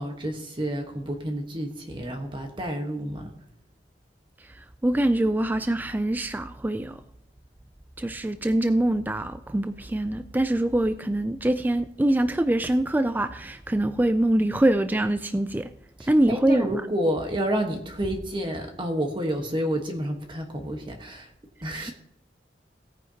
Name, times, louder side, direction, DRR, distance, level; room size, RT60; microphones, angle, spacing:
voice 1, 0.0-3.3 16.0-21.3 21.6-21.9, right 1 dB, 30° right, 3 dB, 1.3 m, -29 dB
voice 2, 4.4-7.0 8.0-15.7 16.1-16.8 21.7-21.9, right 1 dB, 10° right, 10 dB, 0.3 m, -24 dB
17.5 x 9.4 x 2.9 m, 0.74 s
head